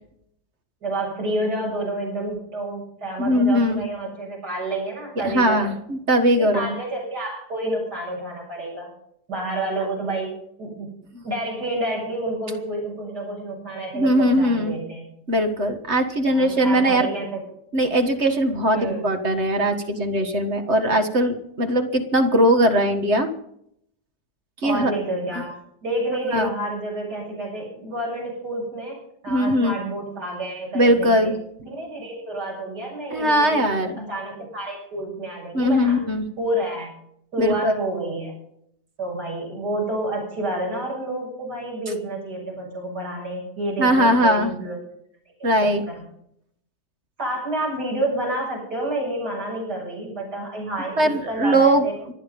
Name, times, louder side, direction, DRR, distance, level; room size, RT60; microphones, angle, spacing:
voice 1, 0.8-5.7 6.4-8.9 9.3-10.3 10.6-10.9 11.2-15.1 16.3-17.4 18.7-19.0 24.6-25.6 25.8-29.0 29.2-31.3 31.7-36.0 36.4-36.9 37.3-38.3 39.0-44.8 45.4-45.5 45.9-46.0 47.2-51.9, right 1 dB, 75° right, -3 dB, 7.9 m, -29 dB
voice 2, 3.2-3.8 5.2-6.8 11.1-11.2 13.9-14.8 15.3-17.1 17.7-23.3 24.6-24.9 26.3-26.5 29.3-29.7 30.7-31.3 33.1-34.1 35.5-36.3 37.4-37.7 43.8-44.5 45.4-45.8 51.0-51.9, equal, 40° right, 6 dB, 1.9 m, -20 dB
25.5 x 9.4 x 5.4 m, 0.71 s
omnidirectional pair, 1.8 m